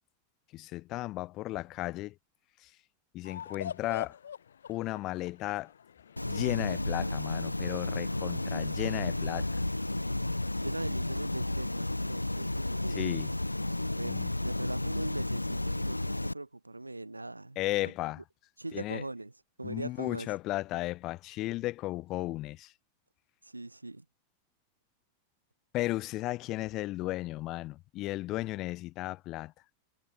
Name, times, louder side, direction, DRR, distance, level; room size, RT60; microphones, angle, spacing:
voice 1, 0.5-2.1 3.1-4.1 4.7-5.7 6.3-9.5 12.9-13.3 14.0-14.3 17.5-18.2 18.7-19.0 19.6-22.7 25.7-29.5, left 17 dB, 35° left, 1.4 m, -34 dB
sound 1, 3.2-9.7, left 8 dB, 65° left, 4.6 m, -46 dB
sound 2, 6.2-16.3, left 1 dB, 85° left, 0.8 m, -32 dB
voice 2, 10.6-13.2 13.9-17.9 18.6-19.3 19.6-20.3 23.4-24.0, right 2 dB, 85° right, 6.0 m, -40 dB
figure-of-eight pair, 90°, 0 cm